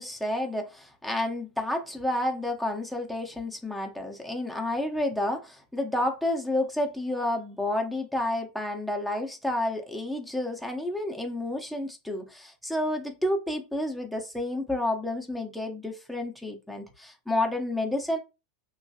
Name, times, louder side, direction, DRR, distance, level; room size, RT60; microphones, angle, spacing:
voice 1, 0.0-18.2, left 1 dB, ahead, 0.7 m, -30 dB
2.9 x 2.3 x 2.8 m
hypercardioid pair, 90°, 0 cm